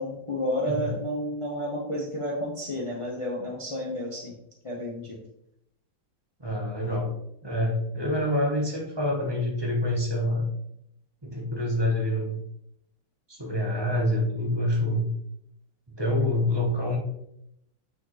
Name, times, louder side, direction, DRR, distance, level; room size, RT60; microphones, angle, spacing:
voice 1, 0.0-4.3 4.6-5.2 16.1-16.3, equal, 45° left, -2 dB, 0.4 m, -31 dB
voice 2, 6.4-7.1 7.4-10.4 11.2-12.4 13.3-15.0 15.9-17.0, left 1 dB, 20° right, -1 dB, 0.7 m, -26 dB
6.1 x 4.9 x 3.1 m, 0.77 s
omnidirectional pair, 2.0 m